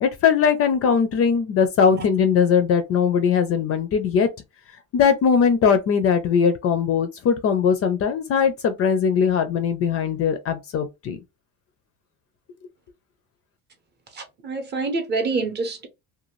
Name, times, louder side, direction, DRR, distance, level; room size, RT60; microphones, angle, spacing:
voice 1, 0.0-4.3 4.9-11.2, left 6 dB, 40° left, 0.4 m, -20 dB
voice 2, 14.1-15.9, right 3 dB, 30° right, 0.6 m, -27 dB
2.6 x 2.2 x 3.0 m
cardioid pair, 160°, 38 cm